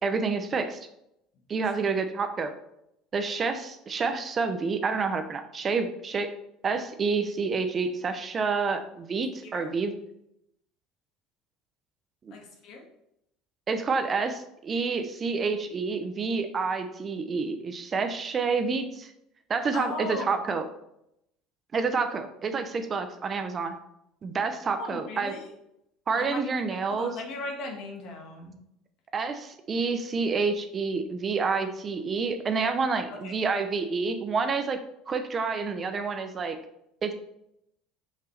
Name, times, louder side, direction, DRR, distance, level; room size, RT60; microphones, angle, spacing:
voice 1, 0.0-0.8 1.5-2.5 3.1-6.3 6.6-9.9 12.2-12.3 13.7-19.1 19.5-20.6 21.7-23.7 24.2-25.3 26.1-27.1 29.1-34.8 35.1-36.6 37.0-37.1, right 4 dB, 30° right, 8 dB, 0.7 m, -28 dB
voice 2, 12.3-12.8 19.7-20.4 24.7-25.5 26.2-28.6 33.1-33.3, left 3 dB, 60° left, 1 dB, 1.7 m, -38 dB
5.8 x 5.7 x 3.3 m, 0.79 s
supercardioid pair, 120°, 0 cm